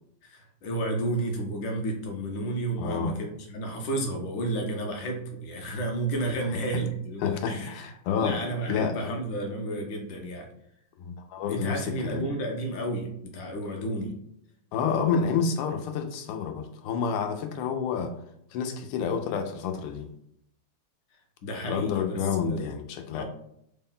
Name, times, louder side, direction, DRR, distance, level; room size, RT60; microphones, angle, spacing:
voice 1, 0.2-7.9 8.2-10.5 11.5-14.2 21.4-22.7 23.1-23.2, right 1 dB, 70° left, 2 dB, 1.2 m, -32 dB
voice 2, 2.8-3.2 7.2-8.4 8.6-9.1 11.0-12.2 14.7-18.2 18.5-20.1 21.6-23.2, left 6 dB, 85° left, 6 dB, 1.5 m, -29 dB
3.8 x 2.1 x 3.7 m, 0.73 s
omnidirectional pair, 2.3 m